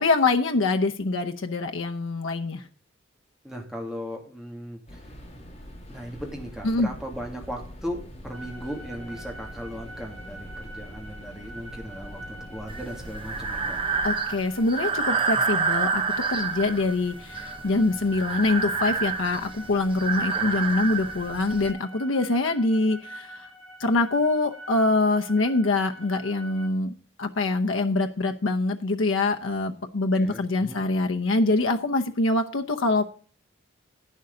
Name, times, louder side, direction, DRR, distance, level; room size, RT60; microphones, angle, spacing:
voice 1, 0.0-2.6 6.6-6.9 14.0-16.0 16.3-23.5 23.8-26.9 27.2-33.0, left 2 dB, 90° left, 5 dB, 0.8 m, -24 dB
voice 2, 3.4-5.1 5.9-13.8 20.3-20.5 30.1-30.8, equal, 5° right, 0 dB, 2.5 m, -37 dB
sound 1, 4.9-14.2, equal, 35° left, 3.1 m, -43 dB
sound 2, 8.3-26.7, right 1 dB, 70° right, 2.7 m, -44 dB
Breathing, 12.7-21.7, right 5 dB, 25° right, 0.9 m, -28 dB
11.0 x 9.6 x 3.8 m, 0.42 s
head